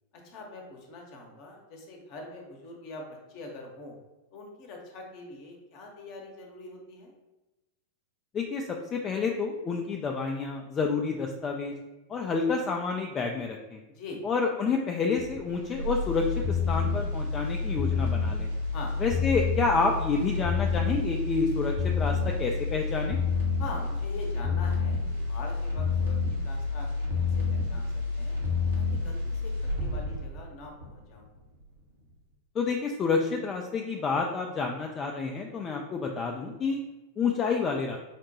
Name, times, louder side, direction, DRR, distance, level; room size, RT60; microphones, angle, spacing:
voice 1, 0.2-3.9 4.3-7.1 13.9-14.2 18.7-18.9 23.6-26.9 27.1-28.4 28.7-31.3, left 3 dB, 45° left, 1 dB, 0.8 m, -43 dB
voice 2, 8.3-11.7 12.1-13.8 14.2-18.5 19.0-23.2 32.6-36.8 37.2-38.0, left 4 dB, 25° left, 2 dB, 0.3 m, -29 dB
sound 1, 15.2-31.2 31.6-31.7, left 4 dB, 70° right, 0.9 m, -29 dB
4.9 x 2.1 x 2.8 m, 1.0 s
figure-of-eight pair, 90°, 0 cm